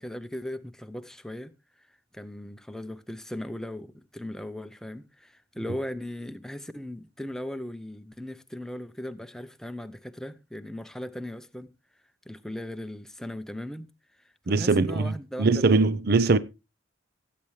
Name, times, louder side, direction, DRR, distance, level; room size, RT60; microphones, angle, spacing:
voice 1, 0.0-1.5 2.1-11.7 12.3-13.9 14.5-15.6, left 1 dB, 5° left, 0.6 m, -38 dB
voice 2, 14.5-16.4, right 3 dB, 55° right, 0.6 m, -22 dB
17.5 x 8.5 x 3.1 m
head